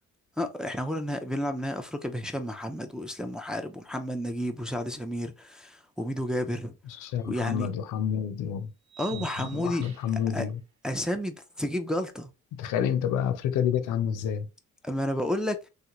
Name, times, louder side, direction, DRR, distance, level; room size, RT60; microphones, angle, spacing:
voice 1, 0.4-6.7 7.3-7.7 9.0-9.9 10.3-10.4 10.8-12.3 14.8-15.6, equal, ahead, 0.4 m, -31 dB
voice 2, 6.9-8.7 9.1-10.6 12.5-14.5, left 8 dB, 90° left, 0.5 m, -29 dB
sound 1, 7.2-7.3 8.9-10.3, right 10 dB, 65° right, 1.0 m, -45 dB
3.3 x 2.4 x 2.9 m
cardioid pair, 90°, 30 cm